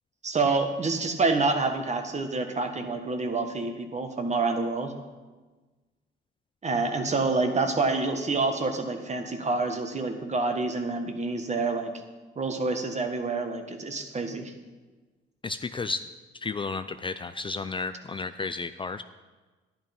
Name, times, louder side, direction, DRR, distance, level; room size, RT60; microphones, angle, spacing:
voice 1, 0.2-4.9 6.6-11.9 12.3-14.5, right 3 dB, 35° right, 6 dB, 1.6 m, -27 dB
voice 2, 15.4-16.1 16.4-19.0, left 4 dB, 25° left, 10 dB, 0.4 m, -32 dB
11.0 x 10.5 x 5.4 m, 1.3 s
cardioid pair, 90°, 20 cm